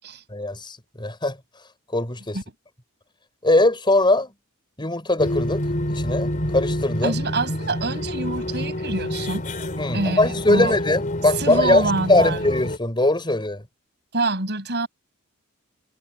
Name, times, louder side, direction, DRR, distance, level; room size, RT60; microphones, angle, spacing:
voice 1, 0.3-1.4 1.9-2.4 3.4-4.3 4.8-5.6 5.9-7.2 9.8-11.8 12.1-13.6, left 2 dB, 20° left, 5.3 m, -21 dB
sound 1, 5.2-12.8, left 1 dB, 35° left, 4.1 m, -28 dB
voice 2, 7.0-9.5 9.9-10.7 11.4-12.4 14.1-14.9, right 2 dB, 50° right, 7.7 m, -26 dB
head